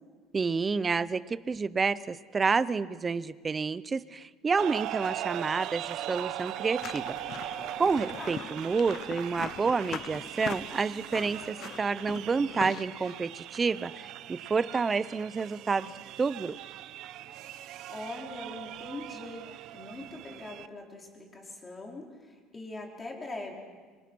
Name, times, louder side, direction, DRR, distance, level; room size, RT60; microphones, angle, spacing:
voice 1, 0.3-7.2 7.8-15.9 16.2-16.5, right 4 dB, 20° right, 17 dB, 0.6 m, -29 dB
sound 1, 4.6-20.7, right 13 dB, 55° right, 0.7 m, -40 dB
sound 2, 6.8-13.2, left 10 dB, 45° left, 0.7 m, -42 dB
voice 2, 17.6-23.5, left 2 dB, 15° left, 0 dB, 4.2 m, -42 dB
25.0 x 25.0 x 6.2 m, 1.5 s
cardioid pair, 155°, 0 cm